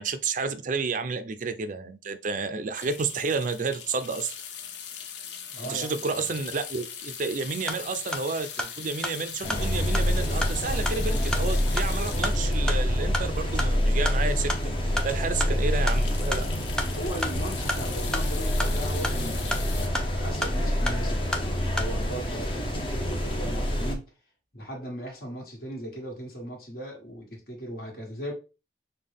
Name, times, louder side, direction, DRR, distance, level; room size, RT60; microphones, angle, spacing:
voice 1, 0.0-4.3 5.6-16.5, right 4 dB, 45° right, 0.4 m, -31 dB
sound 1, 2.7-14.0 14.5-14.6 14.9-15.0 15.4-19.9, left 7 dB, 80° left, 0.7 m, -40 dB
voice 2, 5.5-6.4 16.9-24.0 24.5-28.3, right 1 dB, 55° left, 1.6 m, -38 dB
sound 2, 7.5-22.0, equal, 5° left, 0.5 m, -35 dB
sound 3, 9.4-24.0, equal, 30° left, 0.8 m, -27 dB
5.5 x 2.3 x 3.4 m
head